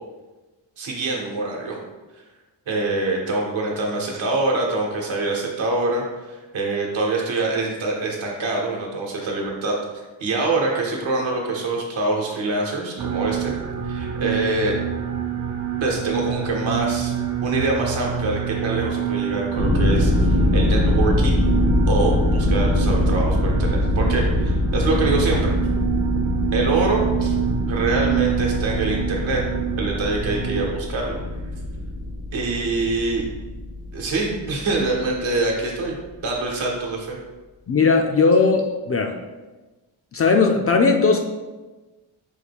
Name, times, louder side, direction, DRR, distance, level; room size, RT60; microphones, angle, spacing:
voice 1, 0.8-1.8 2.7-9.8 10.2-13.5 13.8-14.8 15.8-17.1 17.4-21.4 21.9-25.6 26.5-27.3 27.7-29.4 29.8-31.2 32.3-33.3 33.9-35.9 36.2-37.2, right 2 dB, 75° right, -1 dB, 1.0 m, -25 dB
sound 1, 13.0-30.6, right 8 dB, 40° right, 0.5 m, -27 dB
sound 2, 19.6-35.3, left 1 dB, 90° left, 1.4 m, -23 dB
voice 2, 37.7-39.2 40.1-41.3, left 4 dB, 30° left, 4 dB, 0.4 m, -18 dB
4.9 x 2.2 x 3.4 m, 1.2 s
cardioid pair, 60°, 47 cm